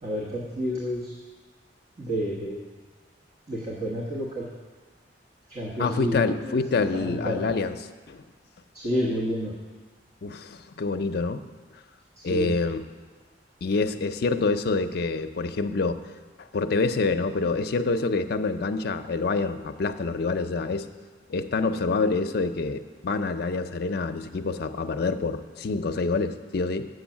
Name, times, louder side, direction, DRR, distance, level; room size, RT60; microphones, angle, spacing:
voice 1, 0.0-1.2 2.0-2.6 3.5-4.4 5.5-6.6 6.9-7.4 8.7-9.5 12.2-12.5, equal, 40° right, -4 dB, 1.2 m, -30 dB
voice 2, 5.8-7.8 8.1-8.2 10.2-11.4 12.2-12.8 13.6-16.0 16.5-20.8 21.3-26.9, left 3 dB, 60° left, 8 dB, 0.5 m, -26 dB
8.0 x 6.3 x 7.1 m, 1.4 s
head